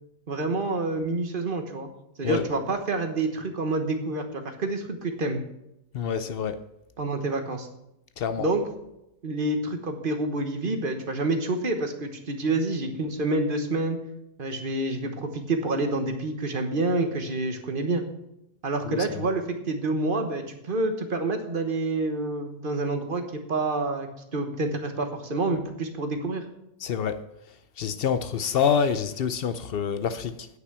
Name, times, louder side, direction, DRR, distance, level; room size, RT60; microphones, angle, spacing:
voice 1, 0.3-1.9 2.2-5.4 7.0-7.7 8.4-8.6 9.2-14.0 14.4-18.0 18.6-26.5, right 2 dB, 35° right, 1.3 m, -28 dB
voice 2, 5.9-6.6 8.2-8.5 18.9-19.1 26.8-27.2 27.8-30.5, left 7 dB, 80° left, 0.5 m, -27 dB
9.5 x 5.9 x 8.0 m
omnidirectional pair, 1.7 m